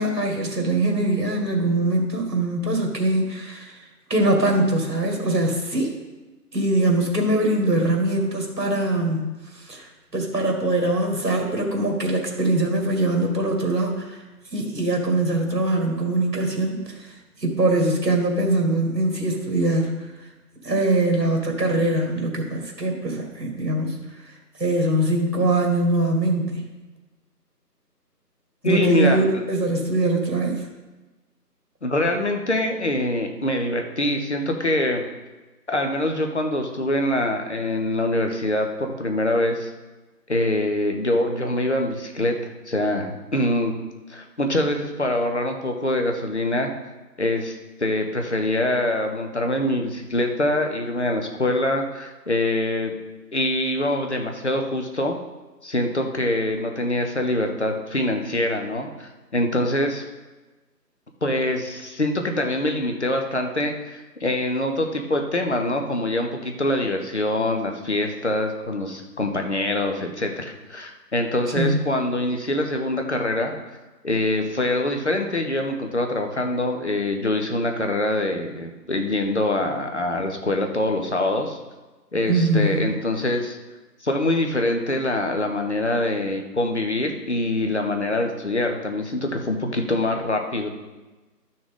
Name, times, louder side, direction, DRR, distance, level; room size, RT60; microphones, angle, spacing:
voice 1, 0.0-3.8 4.1-5.9 6.5-14.2 14.5-20.1 20.6-24.3 24.6-26.7 28.6-30.7 71.5-71.9 82.3-82.8, right 2 dB, 70° right, 1 dB, 2.4 m, -22 dB
voice 2, 28.6-29.2 31.8-35.0 35.7-39.7 40.3-43.8 44.1-46.7 47.2-47.5 47.8-52.9 53.3-55.2 55.6-60.1 61.2-73.5 74.0-81.6 82.1-83.6 84.0-90.7, left 1 dB, 45° left, 4 dB, 1.0 m, -24 dB
12.0 x 6.4 x 3.8 m, 1.2 s
figure-of-eight pair, 165°, 49 cm